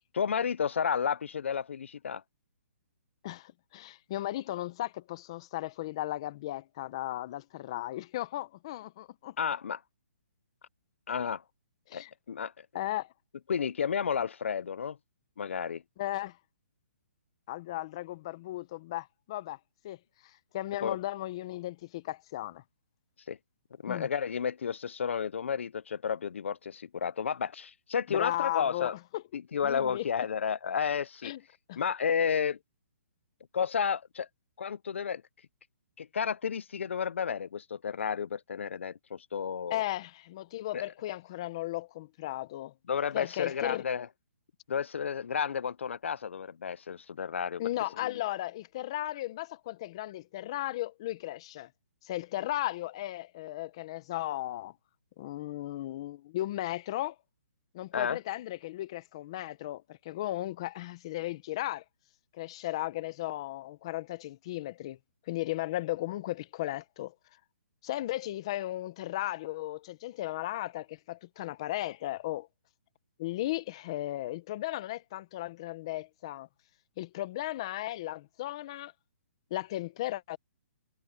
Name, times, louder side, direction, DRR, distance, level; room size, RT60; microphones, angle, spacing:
voice 1, 0.1-2.2 9.4-9.8 11.1-11.4 11.9-12.7 13.5-15.0 15.4-15.8 20.8-21.0 23.3-23.4 23.8-28.9 29.5-31.3 31.8-32.6 33.5-34.3 34.6-35.2 36.0-39.8 40.7-40.8 42.9-44.1 44.7-47.6 48.0-48.1 57.9-58.2, left 7 dB, 60° left, 0.4 m, -32 dB
voice 2, 3.2-9.4 11.1-11.2 11.9-12.1 12.7-13.1 16.0-16.4 17.5-19.6 19.8-20.0 20.2-22.6 23.9-24.1 28.1-29.2 29.6-30.1 31.2-31.4 31.7-31.8 39.7-42.7 43.1-43.8 47.6-51.7 52.0-54.7 55.2-57.2 57.7-61.8 62.3-65.0 65.3-67.1 67.8-72.5 73.2-76.5 77.0-78.9 79.5-80.4, left 15 dB, 25° left, 0.7 m, -36 dB
hypercardioid pair, 175°, 7 cm